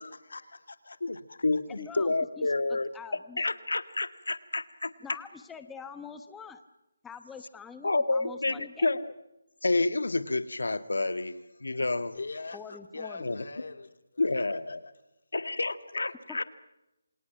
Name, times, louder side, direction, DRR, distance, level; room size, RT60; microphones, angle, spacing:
voice 1, 0.0-1.9 12.1-14.9, left 3 dB, 70° left, 9 dB, 2.8 m, -44 dB
voice 2, 1.0-2.9 3.4-4.9 7.8-9.1 9.6-12.2 13.2-13.4 14.2-14.8 15.3-16.4, left 2 dB, 90° left, 12 dB, 1.8 m, -29 dB
voice 3, 1.8-3.4 5.0-6.6 7.0-8.9 12.5-13.3 16.3-16.4, left 6 dB, 5° left, 9 dB, 1.1 m, -45 dB
28.0 x 27.5 x 5.9 m, 0.93 s
figure-of-eight pair, 165°, 0 cm